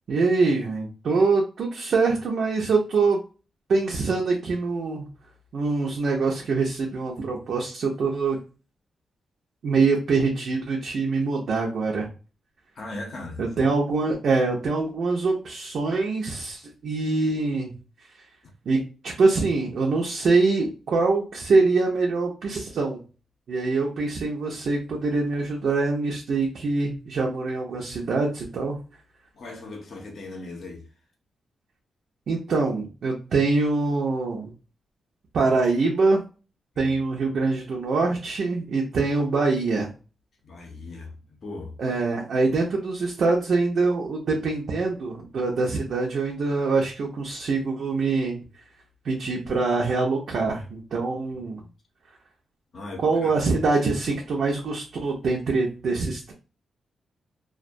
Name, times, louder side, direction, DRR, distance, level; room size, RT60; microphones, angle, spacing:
voice 1, 0.1-3.2 3.7-5.1 5.5-8.4 9.6-12.1 13.4-17.7 18.7-18.8 19.0-23.0 23.5-28.8 32.3-34.5 35.3-36.2 36.8-39.9 41.8-48.4 49.0-51.6 53.0-56.3, right 3 dB, 55° right, 0.5 m, -24 dB
voice 2, 12.8-13.5 18.4-18.5 29.3-30.9 36.7-36.9 40.4-41.8 51.3-51.7 52.7-53.5, left 2 dB, 50° left, 0.7 m, -39 dB
2.2 x 2.1 x 2.5 m
wide cardioid pair, 160°, 0 cm